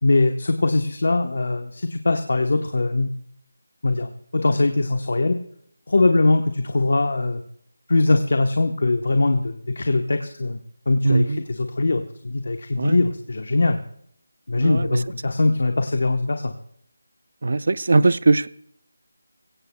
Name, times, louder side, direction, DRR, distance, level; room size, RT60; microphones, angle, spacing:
voice 1, 0.0-3.1 3.8-5.4 5.9-7.4 7.9-10.6 10.9-13.8 14.5-16.5, left 2 dB, 55° left, 1.0 m, -21 dB
voice 2, 11.0-11.4 12.8-13.0 14.6-14.9 17.4-18.5, right 3 dB, 50° right, 0.5 m, -19 dB
21.5 x 17.0 x 2.3 m
figure-of-eight pair, 180°, 0 cm